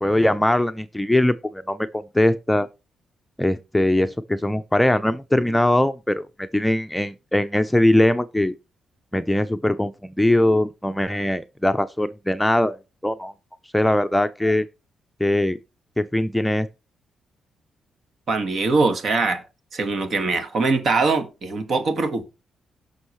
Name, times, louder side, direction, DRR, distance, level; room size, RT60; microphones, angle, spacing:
voice 1, 0.0-2.7 3.4-8.5 9.1-13.3 13.7-14.7 15.2-15.6 16.0-16.7, left 1 dB, 5° left, 0.6 m, -21 dB
voice 2, 18.3-19.4 19.7-22.2, right 3 dB, 55° right, 2.0 m, -22 dB
17.0 x 6.3 x 3.2 m
cardioid pair, 95°, 0 cm